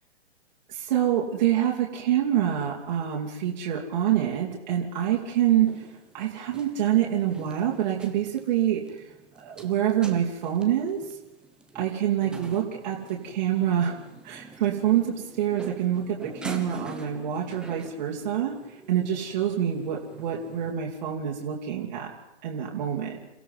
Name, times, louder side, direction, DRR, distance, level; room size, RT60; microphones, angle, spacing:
voice 1, 0.7-5.9 6.1-11.2 11.7-14.0 14.2-22.1 22.4-23.2, right 10 dB, 40° right, -1 dB, 2.7 m, -26 dB
sound 1, 5.2-20.7, right 2 dB, ahead, 1.2 m, -46 dB
29.0 x 16.0 x 5.7 m, 0.94 s
hypercardioid pair, 140°, 34 cm